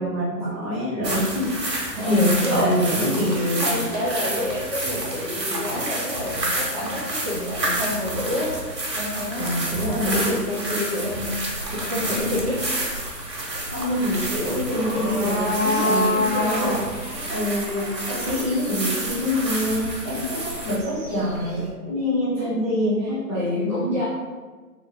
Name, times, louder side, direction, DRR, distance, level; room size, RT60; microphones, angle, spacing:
voice 1, 0.0-1.5 2.0-3.7 9.4-10.3 13.7-20.4 20.6-23.8, equal, 15° left, -16 dB, 0.8 m, -25 dB
sound 1, 1.0-20.8, right 1 dB, 85° right, 1.4 m, -30 dB
voice 2, 1.7-3.0 3.6-8.5 8.9-11.4 11.7-12.6 13.9-14.1 22.4-22.7 23.0-24.0, left 1 dB, 25° right, -11 dB, 1.0 m, -28 dB
sound 2, 11.3-21.7, left 1 dB, 55° right, 1.5 m, -29 dB
3.6 x 2.6 x 3.4 m, 1.4 s
figure-of-eight pair, 150°, 49 cm